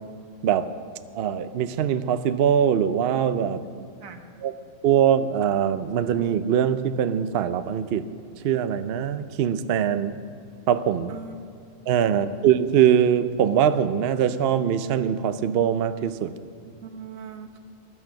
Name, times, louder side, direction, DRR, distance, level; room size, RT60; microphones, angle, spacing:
voice 1, 1.2-3.6 4.4-4.5 4.8-8.0 8.4-10.1 10.7-11.1 11.9-16.3, right 9 dB, 60° right, 12 dB, 0.7 m, -22 dB
voice 2, 3.7-4.3 11.1-11.3 12.0-12.2 16.8-17.6, right 5 dB, 85° right, 6 dB, 1.6 m, -41 dB
15.0 x 11.0 x 6.4 m, 2.5 s
omnidirectional pair, 1.4 m